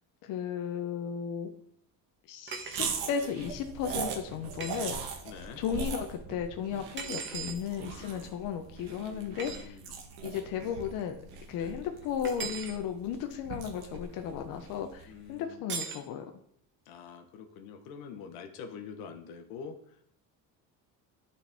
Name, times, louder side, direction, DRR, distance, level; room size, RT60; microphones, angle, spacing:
voice 1, 0.2-1.5 2.3-5.0 5.6-9.8 10.2-11.2 11.5-16.2, left 8 dB, 60° left, 5 dB, 0.8 m, -35 dB
sound 1, 2.5-3.0 4.6-4.8 7.0-7.6 9.4-9.6 12.2-12.8 15.7-16.1, right 6 dB, 30° right, 0.9 m, -38 dB
sound 2, 2.7-15.1, right 5 dB, 80° right, 1.3 m, -40 dB
voice 2, 5.2-5.6 8.0-8.4 9.0-10.0 11.6-11.7 15.1-15.7 16.9-19.8, left 6 dB, 85° left, 6 dB, 1.1 m, -46 dB
12.0 x 4.2 x 3.5 m, 0.67 s
cardioid pair, 155°, 36 cm